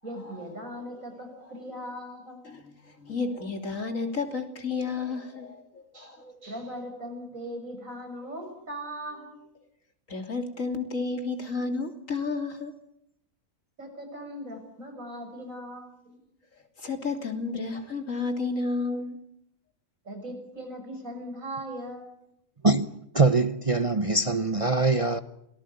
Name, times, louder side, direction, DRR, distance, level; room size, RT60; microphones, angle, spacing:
voice 1, 0.0-2.4 5.9-9.4 13.8-16.2 20.0-22.2, equal, 85° right, 6.8 m, -39 dB
voice 2, 2.5-6.5 10.1-12.7 16.8-19.2, left 4 dB, 75° left, 3.6 m, -32 dB
voice 3, 23.1-25.2, right 3 dB, 25° right, 1.0 m, -23 dB
28.0 x 19.5 x 9.5 m
omnidirectional pair, 1.4 m